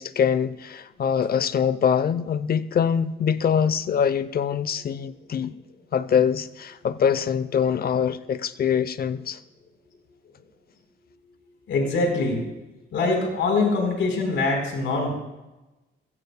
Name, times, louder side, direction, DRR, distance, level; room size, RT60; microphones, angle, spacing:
voice 1, 0.0-5.5 5.9-9.4, left 7 dB, 50° left, 0.8 m, -24 dB
voice 2, 11.7-12.5 12.9-15.1, left 3 dB, 75° left, 4.3 m, -23 dB
21.5 x 15.5 x 2.3 m
cardioid pair, 90°, 20 cm